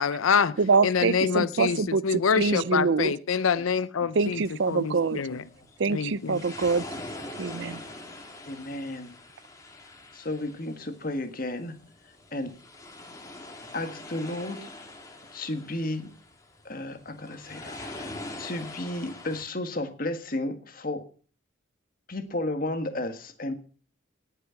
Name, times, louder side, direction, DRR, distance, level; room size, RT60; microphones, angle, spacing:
voice 1, 0.0-0.6 0.8-5.4 5.9-6.4, left 6 dB, 90° left, 0.6 m, -26 dB
voice 2, 0.6-3.1 4.2-5.2 5.8-6.8 7.4-7.8, right 4 dB, 65° right, 0.5 m, -25 dB
voice 3, 4.0-4.4 5.3-5.9 7.1-7.3 8.4-9.2 10.1-11.8 12.0-12.6 13.7-14.7 15.3-16.1 16.6-21.0 22.1-23.5, left 1 dB, 45° left, 1.7 m, -34 dB
sound 1, 4.2-19.4, left 2 dB, 15° left, 2.2 m, -44 dB
18.5 x 6.7 x 5.8 m
head